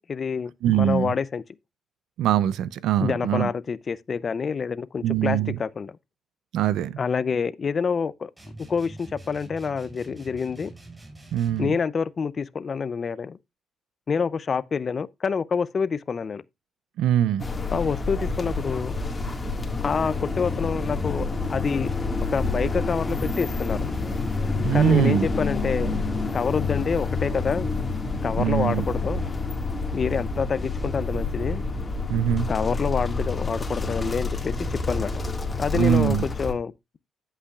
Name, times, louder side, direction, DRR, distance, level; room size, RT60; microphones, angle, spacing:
voice 1, 0.1-1.4 3.0-6.0 7.0-8.3 8.7-10.7 11.6-13.4 14.1-16.4 17.7-18.9 19.8-21.9 22.3-23.8 24.7-25.9 26.3-27.7 28.2-29.2 29.9-31.6 32.5-35.1 35.6-36.7, left 5 dB, 40° left, 0.5 m, -27 dB
voice 2, 0.6-1.1 2.2-3.5 5.0-5.6 6.5-7.0 11.3-11.8 17.0-17.5 24.6-25.3 28.4-28.9 32.1-32.5 35.7-36.2, right 11 dB, 85° right, 0.5 m, -22 dB
sound 1, 8.4-11.8, right 2 dB, 10° right, 5.4 m, -44 dB
sound 2, 17.4-36.5, left 3 dB, 25° left, 1.8 m, -28 dB
14.0 x 5.6 x 2.4 m
cardioid pair, 90°, 0 cm